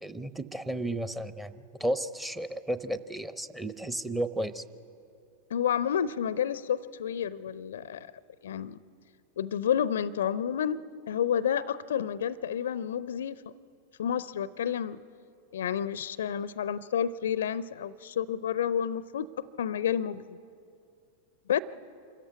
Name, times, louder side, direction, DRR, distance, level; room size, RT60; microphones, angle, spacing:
voice 1, 0.0-4.6, right 1 dB, 5° right, 12 dB, 0.8 m, -33 dB
voice 2, 5.5-8.1 8.4-8.8 9.4-13.4 14.0-15.0 15.5-19.3 19.6-20.4 21.5-21.6, left 9 dB, 60° left, 19 dB, 0.5 m, -30 dB
26.0 x 14.5 x 9.5 m, 2.5 s
figure-of-eight pair, 90°, 0 cm